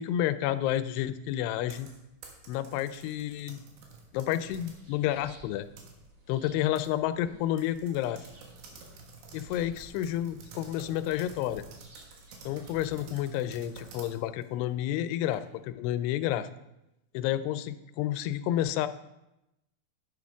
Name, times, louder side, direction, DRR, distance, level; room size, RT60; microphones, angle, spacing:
voice 1, 0.0-1.9 2.5-3.6 4.1-5.7 6.3-8.2 9.3-11.6 12.5-16.5 17.1-18.9, left 12 dB, 85° left, 13 dB, 2.6 m, -30 dB
sound 1, 1.6-4.8 5.3-6.3 6.8-6.9 7.1-7.2 7.6-15.7, right 4 dB, 80° right, 3.5 m, -51 dB
sound 2, 4.5-13.0, right 1 dB, 50° right, 1.5 m, -55 dB
10.5 x 8.8 x 3.5 m, 0.90 s
omnidirectional pair, 4.7 m